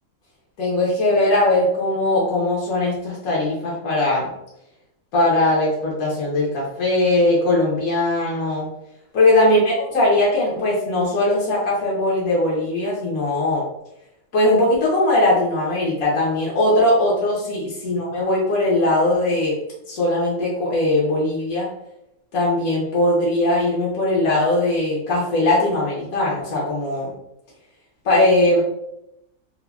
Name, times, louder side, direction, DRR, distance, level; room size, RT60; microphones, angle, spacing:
voice 1, 0.6-4.3 5.1-8.7 9.1-13.6 14.3-19.5 19.9-21.7 22.3-27.1 28.0-28.6, left 1 dB, 85° left, -5 dB, 1.2 m, -20 dB
3.6 x 2.0 x 2.2 m, 0.82 s
omnidirectional pair, 1.5 m